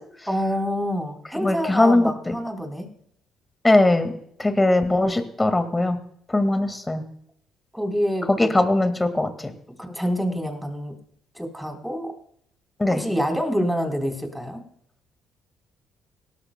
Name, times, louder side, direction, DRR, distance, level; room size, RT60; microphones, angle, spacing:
voice 1, 0.3-2.9 7.7-8.5 9.8-11.0 11.3-12.2 12.9-14.6, equal, ahead, 3 dB, 3.8 m, -27 dB
voice 2, 1.3-2.3 3.6-4.1 4.4-6.0 6.3-7.0 8.3-9.5 12.8-13.0, left 2 dB, 15° left, 8 dB, 1.9 m, -20 dB
18.5 x 13.0 x 2.3 m, 0.67 s
supercardioid pair, 75°, 0 cm